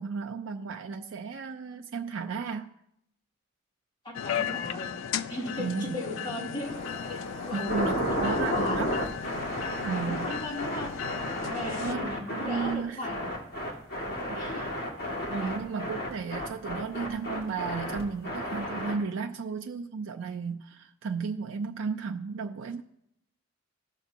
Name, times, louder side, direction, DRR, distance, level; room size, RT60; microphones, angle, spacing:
voice 1, 0.0-2.7 5.6-6.0 7.5-9.0 9.8-10.3 11.8-13.1 14.3-14.9 15.3-22.8, right 5 dB, 80° right, 3 dB, 0.4 m, -34 dB
voice 2, 4.0-4.9 5.3-6.7 7.1-7.2 7.5-8.8 9.9-10.9 11.5-13.3 14.3-14.6 15.4-15.5, left 2 dB, 25° left, -7 dB, 2.9 m, -37 dB
sound 1, 4.1-11.9, left 8 dB, 80° left, 0.4 m, -36 dB
sound 2, 6.6-12.7 13.0-19.0, equal, 50° left, 1.9 m, -33 dB
16.0 x 6.0 x 2.8 m, 0.78 s
head